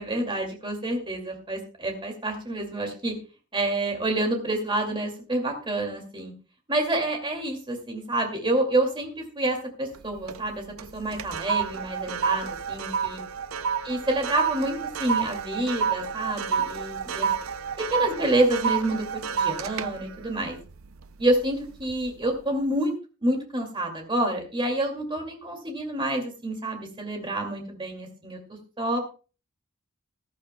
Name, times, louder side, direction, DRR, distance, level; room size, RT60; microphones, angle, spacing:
voice 1, 0.0-3.1 3.5-6.3 6.7-10.6 10.9-13.2 13.8-17.3 17.8-19.0 19.3-20.6 21.2-23.0 23.2-28.4 28.8-29.0, right 1 dB, 25° right, 2 dB, 2.3 m, -28 dB
sound 1, 9.9-10.5 10.8-21.3 21.8-22.1, right 6 dB, 70° right, 0.5 m, -29 dB
14.5 x 14.0 x 2.2 m, 0.35 s
head